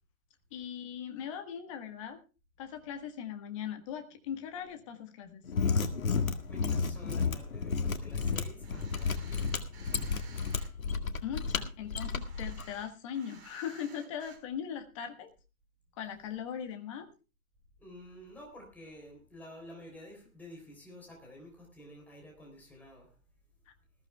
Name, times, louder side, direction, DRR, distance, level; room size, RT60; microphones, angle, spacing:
voice 1, 0.5-2.2 2.6-5.4 11.2-15.3 16.0-17.1 23.7-23.8, left 8 dB, 20° left, 7 dB, 1.4 m, -40 dB
Mechanisms, 5.4-12.6, left 5 dB, 65° left, 1.9 m, -32 dB
voice 2, 6.1-9.8 17.8-23.1, left 1 dB, 5° left, 0 dB, 3.4 m, -51 dB
sound 1, 8.1-10.7 11.2-14.4, right 6 dB, 45° right, 4.5 m, -56 dB
20.0 x 14.5 x 2.3 m, 0.31 s
figure-of-eight pair, 150°, 45 cm